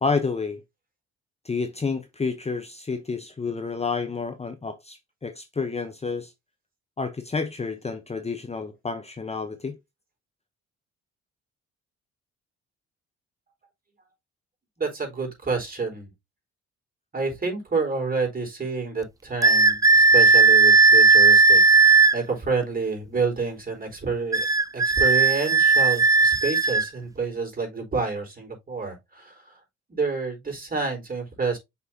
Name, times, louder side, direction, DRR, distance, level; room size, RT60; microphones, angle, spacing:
voice 1, 0.0-0.6 1.4-6.3 7.0-9.8, left 4 dB, 20° left, 0.8 m, -29 dB
voice 2, 14.8-16.1 17.1-24.5 24.7-29.6 29.9-31.6, right 4 dB, 30° right, 4.2 m, -29 dB
sound 1, 19.4-22.2 24.3-26.9, right 4 dB, 10° right, 0.4 m, -16 dB
7.4 x 6.0 x 2.7 m
cardioid pair, 90°, 30 cm